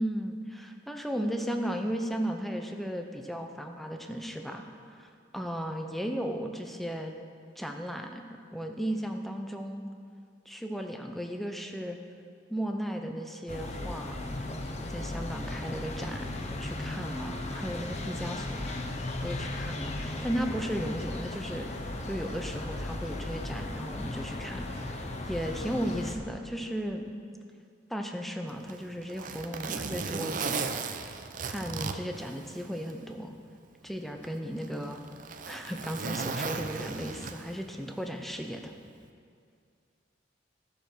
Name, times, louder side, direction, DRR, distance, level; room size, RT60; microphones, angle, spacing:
voice 1, 0.0-7.1 7.6-8.2 8.5-9.8 10.5-12.0 12.5-14.2 14.9-18.7 19.2-27.1 27.9-30.7 31.4-33.3 33.8-35.0 35.5-38.7, equal, ahead, 4 dB, 0.6 m, -35 dB
sound 1, 13.5-26.2, left 2 dB, 35° left, 0.8 m, -36 dB
Zipper (clothing), 28.5-33.0 33.4-33.5 34.2-37.7 38.9-39.1, right 4 dB, 45° right, 0.6 m, -36 dB
14.0 x 6.8 x 6.2 m, 2.3 s
head